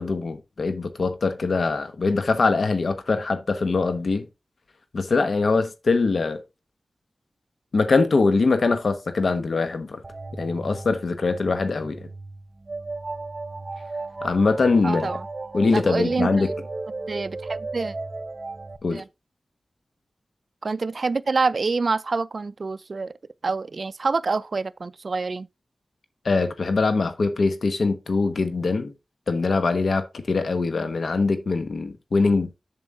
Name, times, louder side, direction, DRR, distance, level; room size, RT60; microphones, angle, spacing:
voice 1, 0.0-4.3 4.9-6.4 7.7-10.0 10.4-12.0 14.2-15.2 15.5-16.5 18.8-19.0 26.2-28.9 29.3-32.5, left 3 dB, 75° left, 1.0 m, -22 dB
sound 1, 10.0-18.8, right 3 dB, 45° right, 0.8 m, -35 dB
voice 2, 14.8-15.3 15.7-16.5 17.1-17.9 18.9-19.1 20.6-23.1 23.4-25.5, right 4 dB, 60° right, 0.4 m, -26 dB
7.6 x 7.1 x 3.6 m
wide cardioid pair, 70°, 0 cm